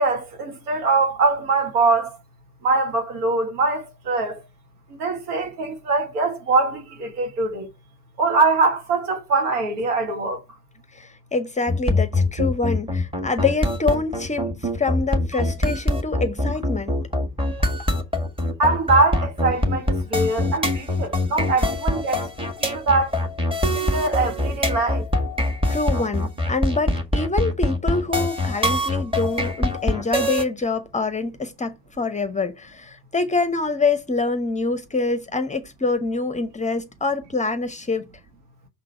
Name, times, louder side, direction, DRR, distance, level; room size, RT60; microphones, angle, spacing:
voice 1, 0.0-2.2 2.6-4.4 4.9-7.7 8.2-10.4 18.6-23.1 23.7-25.1, right 3 dB, 65° right, 1.9 m, -22 dB
voice 2, 10.9-16.9 25.7-38.0, left 3 dB, 15° left, 0.8 m, -25 dB
sound 1, 11.7-30.4, left 1 dB, 10° right, 1.7 m, -23 dB
6.4 x 3.8 x 5.6 m
figure-of-eight pair, 60°, 49 cm